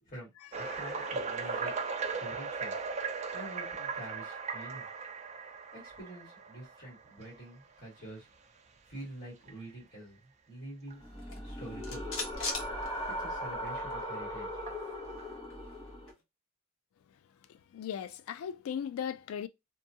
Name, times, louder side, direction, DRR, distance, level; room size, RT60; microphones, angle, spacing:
voice 1, 0.0-1.7 2.2-2.7 3.3-4.9 5.7-8.3 8.9-10.2 10.5-11.1 11.4-12.0 13.1-14.7, right 1 dB, 40° left, 1.6 m, -47 dB
sound 1, 0.5-7.4 8.0-8.2 8.8-8.9 9.4-9.5 10.9-11.0 13.8-13.9 14.7-15.4, right 5 dB, 30° right, 0.4 m, -38 dB
sound 2, 11.0-16.1, equal, 25° left, 1.0 m, -39 dB
sound 3, 11.1-13.6 13.9-14.0 14.3-16.2, left 3 dB, 65° left, 0.8 m, -42 dB
voice 2, 17.7-19.5, left 8 dB, 85° left, 0.3 m, -37 dB
2.7 x 2.3 x 2.7 m
head